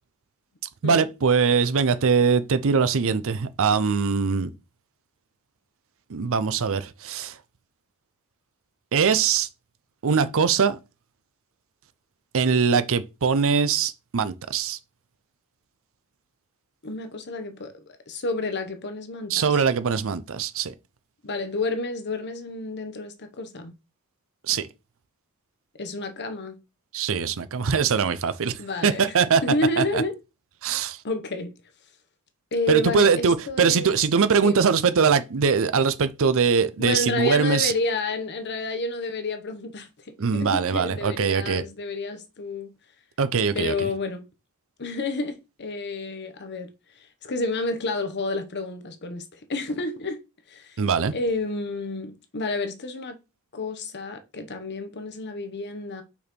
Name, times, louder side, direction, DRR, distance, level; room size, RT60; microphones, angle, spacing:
voice 1, 0.8-4.5 6.1-7.3 8.9-9.5 10.0-10.8 12.3-14.8 19.3-20.7 24.5-24.7 26.9-29.4 29.8-30.0 30.6-31.0 32.7-37.7 40.2-41.7 43.2-43.9 50.8-51.1, right 5 dB, 65° right, 0.6 m, -22 dB
voice 2, 16.8-19.6 21.2-23.7 25.8-26.6 28.6-29.2 29.4-30.1 31.0-31.5 32.5-34.0 34.4-34.6 36.8-42.7 43.5-44.3 44.8-50.2 50.5-50.8 51.1-53.2 53.5-56.0, left 2 dB, 50° left, 1.0 m, -30 dB
5.7 x 4.3 x 4.5 m
head